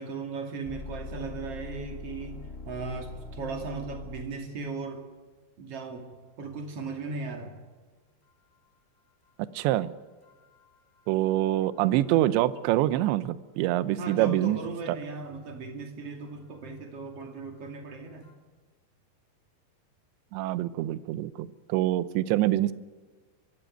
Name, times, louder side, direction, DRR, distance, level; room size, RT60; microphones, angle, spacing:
voice 1, 0.0-5.0 5.6-6.1 6.4-7.6 14.0-18.3, right 4 dB, 40° right, 4 dB, 2.8 m, -37 dB
sound 1, 0.6-4.7 10.2-11.7 12.0-12.1 18.2-18.3, left 3 dB, 70° left, 0.6 m, -43 dB
voice 2, 9.5-9.9 11.1-14.6 14.9-15.0 20.3-22.7, right 14 dB, 80° right, 16 dB, 2.9 m, -25 dB
23.5 x 15.0 x 9.1 m, 1.4 s
omnidirectional pair, 5.3 m